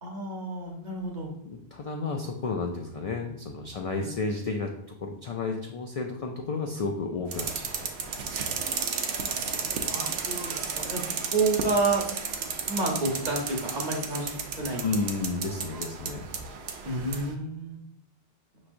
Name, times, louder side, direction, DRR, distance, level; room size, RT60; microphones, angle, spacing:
voice 1, 0.0-1.3 4.0-4.1 9.1-12.1 12.4-15.0 16.8-17.8, right 2 dB, 45° right, -1 dB, 1.0 m, -30 dB
voice 2, 1.5-4.7 5.0-7.7 8.0-8.2 14.8-16.2, left 3 dB, 55° left, 2 dB, 0.4 m, -32 dB
sound 1, 7.3-17.3, right 6 dB, 80° right, 0.8 m, -33 dB
5.7 x 3.1 x 2.6 m, 0.79 s
omnidirectional pair, 1.1 m